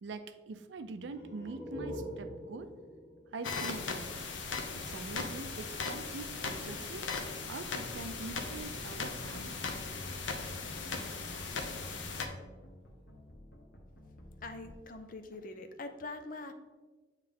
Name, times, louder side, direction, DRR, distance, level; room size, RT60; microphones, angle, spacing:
voice 1, 0.0-2.7 3.3-4.3 4.7-9.8, right 3 dB, 70° right, 10 dB, 0.4 m, -44 dB
sound 1, 1.0-4.6, equal, 30° left, 1.3 m, -45 dB
sound 2, 3.4-12.3, left 4 dB, 85° left, 0.7 m, -38 dB
sound 3, 7.7-14.7, left 1 dB, 60° left, 1.0 m, -51 dB
voice 2, 14.4-16.5, left 2 dB, 45° left, 7 dB, 0.5 m, -43 dB
8.6 x 3.2 x 3.6 m, 1.3 s
head